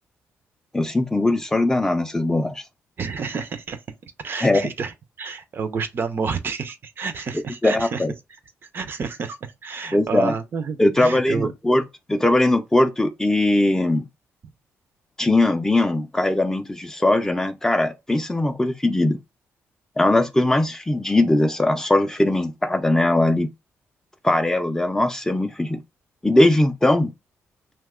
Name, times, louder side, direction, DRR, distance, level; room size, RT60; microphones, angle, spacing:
voice 1, 0.7-2.6 4.4-4.6 7.6-8.1 9.9-10.3 10.8-11.8 12.1-14.0 15.2-19.2 20.0-23.5 24.2-25.8 26.2-27.1, left 1 dB, 10° left, 0.4 m, -20 dB
voice 2, 3.0-8.0 8.7-11.5, right 5 dB, 45° right, 0.5 m, -30 dB
2.8 x 2.1 x 3.5 m
cardioid pair, 120°, 5 cm